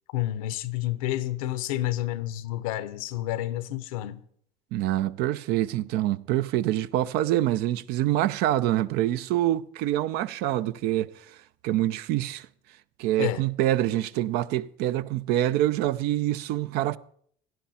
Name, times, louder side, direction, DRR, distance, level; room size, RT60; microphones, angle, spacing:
voice 1, 0.1-4.2 13.2-13.4, left 15 dB, 90° left, 1.0 m, -29 dB
voice 2, 4.7-11.1 11.6-12.5 13.0-17.0, right 14 dB, 70° right, 0.6 m, -25 dB
16.5 x 11.5 x 4.3 m
supercardioid pair, 95°, 17 cm